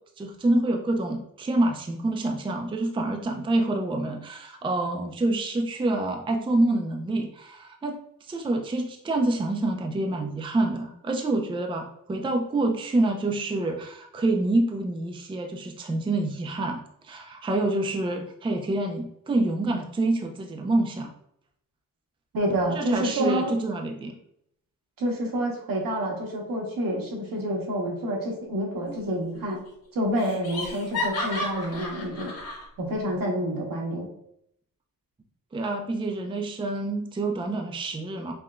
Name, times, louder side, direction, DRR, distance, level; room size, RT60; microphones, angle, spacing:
voice 1, 0.2-21.1 22.7-24.1 35.5-38.3, right 2 dB, 15° right, 3 dB, 0.4 m, -27 dB
voice 2, 22.3-23.5 25.0-29.6 29.9-32.3 32.8-34.1, equal, 75° right, -2 dB, 1.3 m, -28 dB
Laughter, 28.9-29.4 29.7-29.8 30.2-32.6, left 2 dB, 45° left, 1.5 m, -33 dB
5.5 x 2.2 x 2.4 m, 0.72 s
cardioid pair, 85°, 34 cm